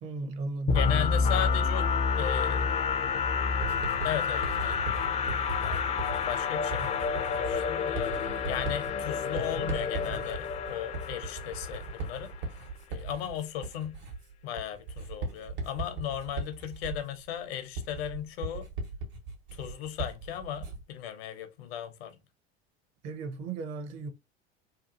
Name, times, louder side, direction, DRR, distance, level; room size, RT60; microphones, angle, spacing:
voice 1, 0.0-0.9 23.0-24.1, right 3 dB, 45° right, 0.7 m, -35 dB
voice 2, 0.7-2.7 4.0-12.3 12.9-14.0 14.4-18.7 19.5-22.2, left 10 dB, 65° left, 0.7 m, -37 dB
sound 1, 0.7-12.4, left 5 dB, 20° left, 0.3 m, -29 dB
Writing, 3.6-21.0, right 3 dB, 75° right, 1.3 m, -39 dB
2.9 x 2.4 x 2.5 m
hypercardioid pair, 80°, 33 cm